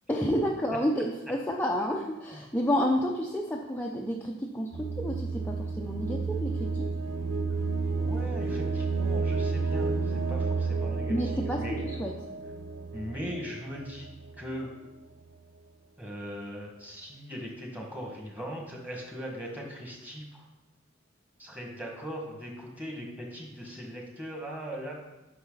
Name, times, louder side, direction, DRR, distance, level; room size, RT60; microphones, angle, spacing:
voice 1, 0.1-6.9 11.1-12.1, equal, 10° left, -2 dB, 0.6 m, -30 dB
sound 1, 4.7-14.5, right 4 dB, 90° right, 0.7 m, -31 dB
voice 2, 8.0-11.8 12.9-14.1 14.4-14.7 16.0-20.4 21.4-24.9, equal, 10° right, -1 dB, 1.7 m, -39 dB
9.7 x 6.2 x 4.0 m, 0.99 s
head